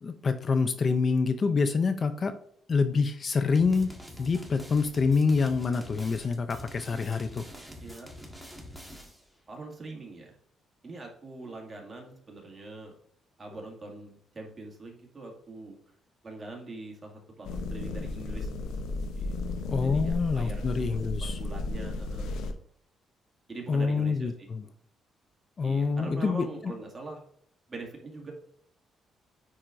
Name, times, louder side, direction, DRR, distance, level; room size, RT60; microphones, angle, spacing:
voice 1, 0.0-2.4 2.7-7.5 19.7-21.4 23.7-24.7 25.6-26.7, left 4 dB, 45° left, 10 dB, 0.5 m, -26 dB
sound 1, 3.6-9.3, equal, ahead, 1.6 m, -46 dB
voice 2, 9.5-10.3 10.8-12.9 13.4-16.0 16.2-18.5 19.1-19.4 19.8-20.6 20.9-22.3 23.5-24.5 25.6-27.2 27.7-28.3, right 2 dB, 30° right, 0 dB, 2.1 m, -43 dB
sound 2, 17.4-22.5, left 2 dB, 85° left, 0.7 m, -33 dB
9.4 x 4.3 x 2.6 m, 0.65 s
cardioid pair, 90°, 0 cm